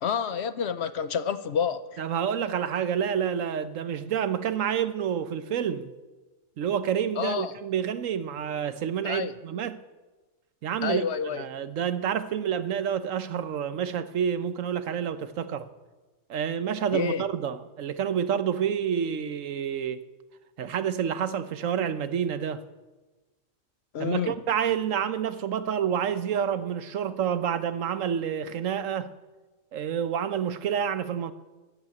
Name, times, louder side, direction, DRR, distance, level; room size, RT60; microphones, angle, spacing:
voice 1, 0.0-2.0 7.2-7.5 9.0-9.3 10.8-11.4 16.9-17.2 23.9-24.3, left 7 dB, 60° left, 0.9 m, -29 dB
voice 2, 2.0-5.9 6.6-9.8 10.6-11.1 11.4-15.7 16.3-20.1 20.6-22.6 24.0-29.1 29.7-31.3, right 8 dB, 75° right, 1.2 m, -28 dB
12.5 x 12.5 x 8.6 m
omnidirectional pair, 1.4 m